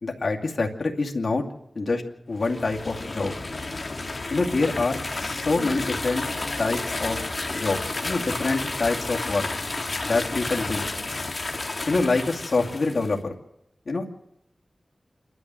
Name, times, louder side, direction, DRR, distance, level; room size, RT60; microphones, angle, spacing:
voice 1, 0.0-1.4 1.7-2.0 2.3-3.3 4.3-6.2 6.6-7.2 7.5-9.5 10.0-10.9 11.9-13.3 13.9-14.1, left 3 dB, 70° left, 1 dB, 2.4 m, -26 dB
sound 1, 2.3-13.1, left 2 dB, 50° left, 2.4 m, -31 dB
28.5 x 12.5 x 7.7 m, 0.84 s
wide cardioid pair, 55°, 0 cm